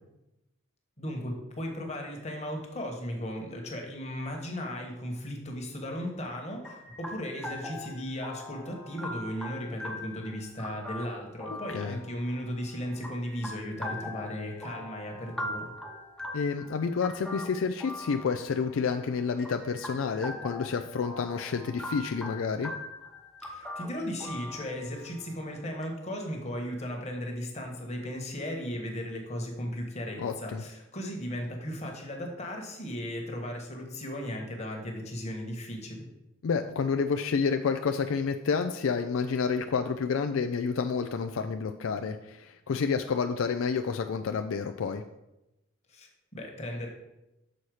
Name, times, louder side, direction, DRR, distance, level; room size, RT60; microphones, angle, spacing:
voice 1, 1.0-15.7 23.4-36.1 45.9-46.9, equal, 35° left, 1 dB, 1.4 m, -36 dB
sound 1, 6.6-25.9, left 1 dB, 5° left, 0.8 m, -42 dB
voice 2, 16.3-22.7 30.2-30.6 36.4-45.0, left 5 dB, 75° left, 6 dB, 0.4 m, -29 dB
6.4 x 4.2 x 6.3 m, 0.92 s
head